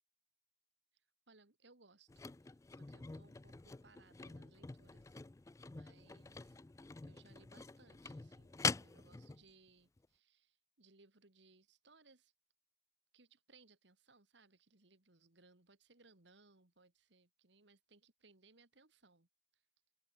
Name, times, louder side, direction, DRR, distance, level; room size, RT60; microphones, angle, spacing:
voice 1, 1.3-2.1 2.4-5.2 5.7-6.6 7.0-12.3 13.1-19.3 19.5-19.6, right 3 dB, 65° right, 2.2 m, -67 dB
sound 1, 2.1-9.4 10.0-10.1, left 4 dB, 15° left, 0.3 m, -45 dB
open air
head